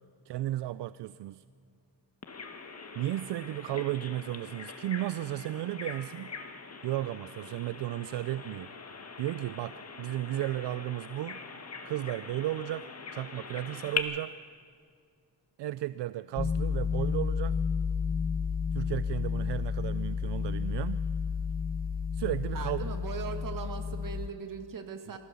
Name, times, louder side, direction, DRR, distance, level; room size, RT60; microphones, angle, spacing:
voice 1, 0.3-1.4 3.0-6.3 6.8-8.7 9.2-11.4 11.8-12.8 13.1-14.3 15.6-17.6 18.7-21.0 22.1-22.9, right 14 dB, 80° right, 16 dB, 0.5 m, -34 dB
Bird vocalization bird call bird song, 2.2-14.0, left 5 dB, 35° left, 1.8 m, -42 dB
sound 1, 16.4-24.3, left 6 dB, 20° left, 0.8 m, -31 dB
voice 2, 22.5-25.2, right 6 dB, 50° right, 6 dB, 2.2 m, -39 dB
25.0 x 15.0 x 7.0 m, 2.3 s
cardioid pair, 90°, 41 cm